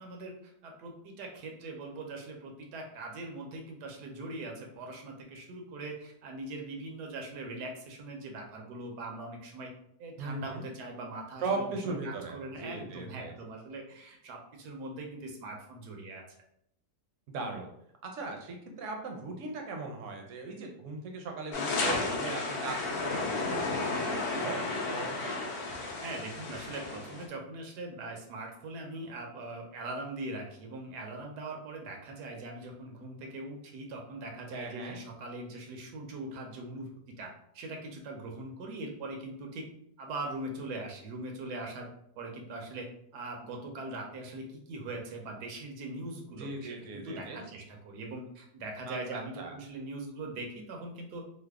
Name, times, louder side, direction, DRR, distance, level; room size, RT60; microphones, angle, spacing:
voice 1, 0.0-9.7 10.0-16.2 26.0-36.9 37.2-39.7 40.0-41.9 42.2-51.2, right 2 dB, 85° right, 2 dB, 1.3 m, -41 dB
voice 2, 10.2-10.6 11.4-13.3 17.3-17.7 18.0-25.3 34.5-35.0 46.4-47.5 48.9-49.5, right 3 dB, 65° right, 2 dB, 0.8 m, -38 dB
sound 1, 21.5-27.3, left 3 dB, 60° left, 0.6 m, -33 dB
3.2 x 2.0 x 3.4 m, 0.71 s
omnidirectional pair, 1.7 m